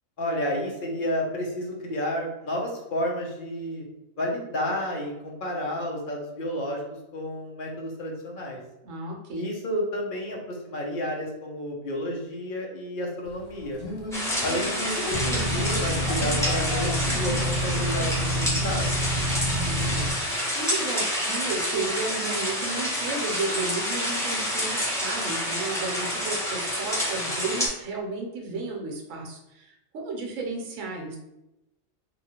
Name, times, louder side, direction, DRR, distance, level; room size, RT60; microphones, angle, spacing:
voice 1, 0.2-3.8 4.2-6.8 7.1-8.6 9.3-13.8 14.4-18.9, equal, 50° left, -1 dB, 0.7 m, -31 dB
voice 2, 8.8-9.5 19.4-31.2, right 3 dB, 75° right, 0 dB, 1.0 m, -33 dB
sound 1, 13.2-19.2, left 2 dB, 70° left, 1.0 m, -39 dB
sound 2, 14.1-27.7, equal, 5° left, 0.5 m, -28 dB
sound 3, 15.1-20.1, right 1 dB, 55° right, 0.5 m, -28 dB
2.9 x 2.4 x 2.8 m, 0.92 s
omnidirectional pair, 1.4 m